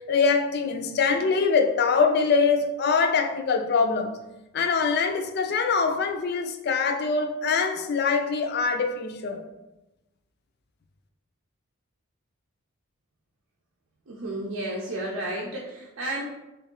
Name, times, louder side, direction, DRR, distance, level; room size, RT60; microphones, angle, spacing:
voice 1, 0.1-4.1 4.5-9.4, left 5 dB, 50° left, 0.4 m, -23 dB
voice 2, 14.1-16.2, right 1 dB, 90° right, 0.6 m, -32 dB
3.6 x 3.1 x 3.7 m
head